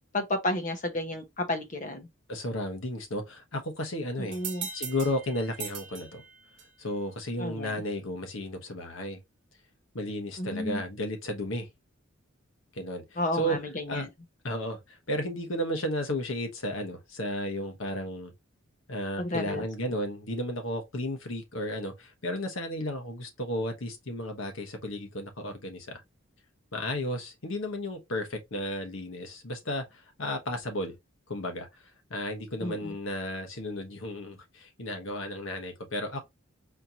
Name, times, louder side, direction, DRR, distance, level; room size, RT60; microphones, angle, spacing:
voice 1, 0.1-2.1 4.2-4.7 7.4-7.8 10.4-10.8 13.2-14.1 19.2-19.6 32.6-32.9, left 1 dB, 40° left, 0.9 m, -32 dB
voice 2, 2.3-4.4 4.7-6.2 6.8-9.2 9.9-11.7 12.7-13.6 13.9-14.1 14.4-18.3 18.9-26.0 26.7-31.0 31.3-31.7 32.1-36.2, left 1 dB, 75° left, 1.1 m, -33 dB
sound 1, 4.3-6.9, right 7 dB, 55° right, 1.0 m, -40 dB
4.3 x 2.8 x 2.8 m
head